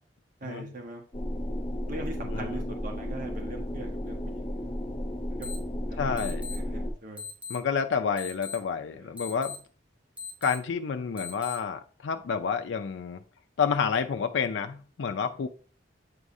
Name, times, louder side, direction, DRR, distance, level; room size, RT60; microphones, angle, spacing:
voice 1, 0.4-1.0 1.9-4.6 5.3-5.5 5.9-7.2 8.9-9.3, right 2 dB, 50° right, 1 dB, 1.3 m, -42 dB
sound 1, 1.1-6.9, equal, 30° left, 0.8 m, -33 dB
voice 2, 2.2-2.6 6.0-6.4 7.5-9.6 10.4-13.2 13.6-15.5, left 6 dB, 90° left, 7 dB, 0.4 m, -29 dB
sound 2, 5.4-5.6 6.2-6.6 7.2-7.6 8.2-8.6 9.2-9.6 10.2-10.6 11.2-11.6, left 6 dB, 10° right, 1.8 m, -38 dB
8.2 x 4.8 x 2.6 m, 0.41 s
head